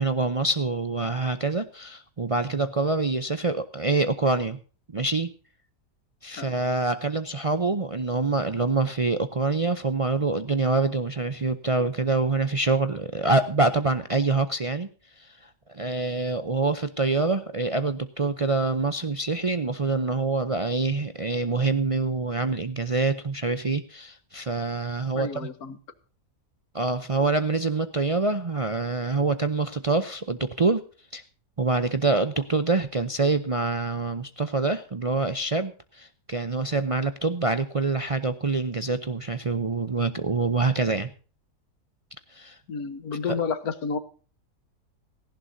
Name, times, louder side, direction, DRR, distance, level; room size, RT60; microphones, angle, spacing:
voice 1, 0.0-4.6 4.9-5.3 6.2-14.9 15.2-15.3 15.7-25.5 26.7-30.8 31.1-31.2 31.6-41.1 42.3-42.6 43.3-43.4, right 3 dB, 60° right, 9 dB, 0.3 m, -25 dB
voice 2, 25.1-25.8 42.7-44.0, left 5 dB, 65° left, 12 dB, 1.6 m, -30 dB
17.5 x 15.5 x 2.7 m, 0.38 s
omnidirectional pair, 1.7 m